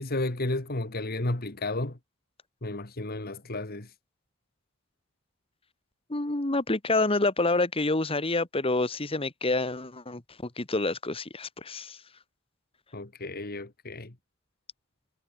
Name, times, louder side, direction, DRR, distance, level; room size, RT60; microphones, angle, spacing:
voice 1, 0.0-2.0 2.6-3.9 12.9-14.1, left 2 dB, 50° left, 2.1 m, -32 dB
voice 2, 6.1-12.0, left 2 dB, 30° left, 1.7 m, -28 dB
head